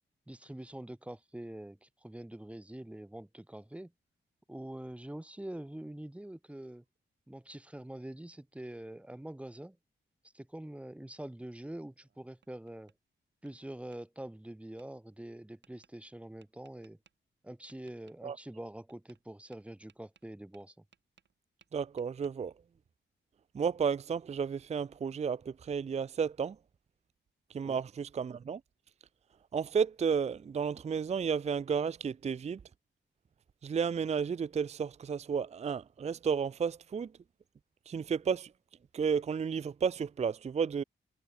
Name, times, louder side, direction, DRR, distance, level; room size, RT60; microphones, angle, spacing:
voice 1, 0.3-3.9 4.5-6.8 7.3-9.8 10.3-12.9 13.4-17.0 17.4-20.7 27.6-27.8, right 1 dB, 5° right, 4.1 m, -45 dB
Tap, 11.9-13.0 13.5-14.0 14.8-14.9 15.6-15.9 16.4-17.1 17.7-18.2 18.9-19.2 19.5-21.4 21.6-22.3, right 7 dB, 60° right, 6.0 m, -66 dB
voice 2, 21.7-22.5 23.5-26.6 27.5-28.6 29.5-32.6 33.6-37.1 37.9-38.5 38.9-40.8, right 6 dB, 35° right, 0.5 m, -32 dB
wide cardioid pair, 165°, 20 cm